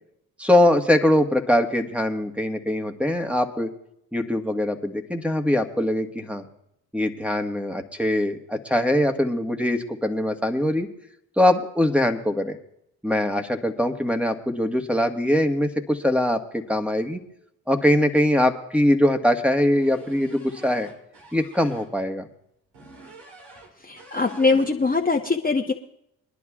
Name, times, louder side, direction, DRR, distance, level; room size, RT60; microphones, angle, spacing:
voice 1, 0.4-3.7 4.1-6.4 6.9-10.9 11.4-12.6 13.0-17.2 17.7-20.9 21.3-22.3, left 1 dB, 5° right, 5 dB, 1.5 m, -22 dB
sound 1, 19.7-21.9 22.7-23.7 24.0-25.0, right 2 dB, 85° right, 3.3 m, -45 dB
voice 2, 23.8-25.7, left 3 dB, 20° left, 1 dB, 1.0 m, -22 dB
23.5 x 11.0 x 2.4 m, 0.77 s
hypercardioid pair, 50°, 43 cm